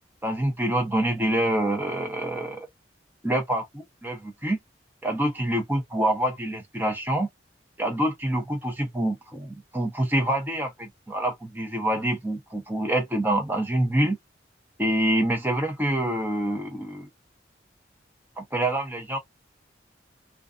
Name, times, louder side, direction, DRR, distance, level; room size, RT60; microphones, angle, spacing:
voice 1, 0.2-2.7 3.2-4.6 5.0-7.3 7.8-14.2 14.8-17.1 18.4-19.2, right 1 dB, 10° right, 0.7 m, -26 dB
2.4 x 2.3 x 2.4 m
head